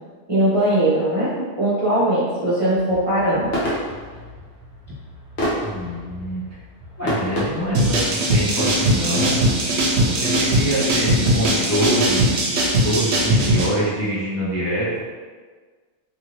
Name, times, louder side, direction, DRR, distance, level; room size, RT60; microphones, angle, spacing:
voice 1, 0.3-3.5, right 1 dB, 35° right, -9 dB, 0.7 m, -20 dB
sound 1, 2.7-7.8, equal, 65° left, 1.2 m, -29 dB
voice 2, 5.6-6.4 7.0-9.4 10.1-12.2 12.8-15.0, equal, 20° left, -10 dB, 0.5 m, -25 dB
sound 2, 7.7-13.7, right 1 dB, 70° right, 0.9 m, -20 dB
2.7 x 2.6 x 3.1 m, 1.5 s
omnidirectional pair, 1.2 m